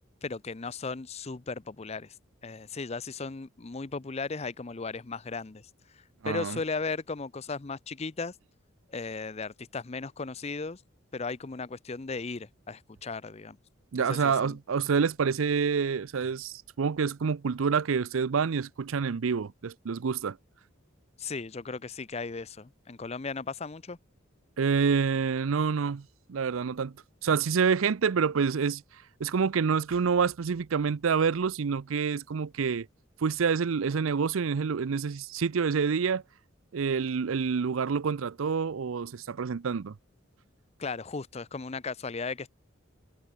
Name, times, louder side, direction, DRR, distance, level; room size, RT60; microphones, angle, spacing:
voice 1, 0.2-2.1 2.4-8.3 8.9-10.8 11.1-13.6 14.0-14.6 21.2-24.0 40.8-42.5, left 4 dB, 30° left, 0.6 m, -36 dB
voice 2, 6.2-6.6 13.9-20.4 24.6-26.9 27.2-28.8 29.2-32.9 33.2-36.2 36.7-39.9, right 6 dB, 80° right, 0.5 m, -27 dB
head